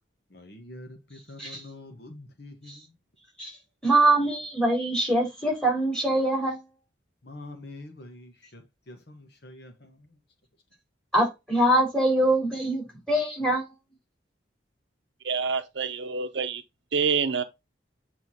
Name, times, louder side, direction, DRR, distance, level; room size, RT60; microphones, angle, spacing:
voice 1, 0.3-2.8 7.2-10.0, left 2 dB, 55° left, 1.2 m, -45 dB
voice 2, 3.8-6.6 11.1-13.6, right 1 dB, 5° left, 3.7 m, -23 dB
voice 3, 15.2-16.6 16.9-17.4, right 5 dB, 65° right, 0.7 m, -27 dB
8.0 x 4.5 x 2.8 m
head